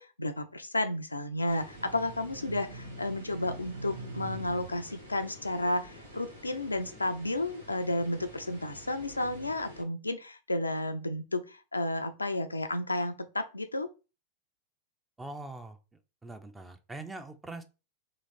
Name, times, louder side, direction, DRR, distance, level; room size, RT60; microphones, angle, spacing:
voice 1, 0.0-13.9, left 1 dB, 80° left, 0.5 m, -32 dB
sound 1, 1.4-9.8, equal, 85° right, 1.5 m, -50 dB
sound 2, 1.6-7.1 7.6-9.5, right 3 dB, 65° right, 0.8 m, -46 dB
voice 2, 15.2-15.8 16.2-17.6, right 2 dB, 10° right, 0.6 m, -42 dB
3.2 x 3.1 x 4.0 m
figure-of-eight pair, 90°, 0 cm